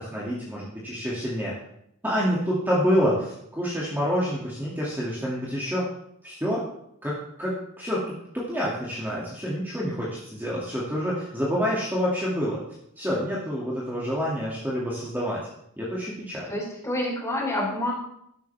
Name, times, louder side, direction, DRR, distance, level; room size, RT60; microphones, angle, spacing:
voice 1, 0.0-1.6 2.0-5.9 6.2-6.6 7.0-8.0 8.3-12.6 13.0-15.4 15.8-16.5, equal, 10° right, -7 dB, 2.6 m, -27 dB
voice 2, 16.5-17.9, left 1 dB, 15° left, -3 dB, 4.4 m, -28 dB
13.5 x 11.5 x 3.6 m, 0.74 s
head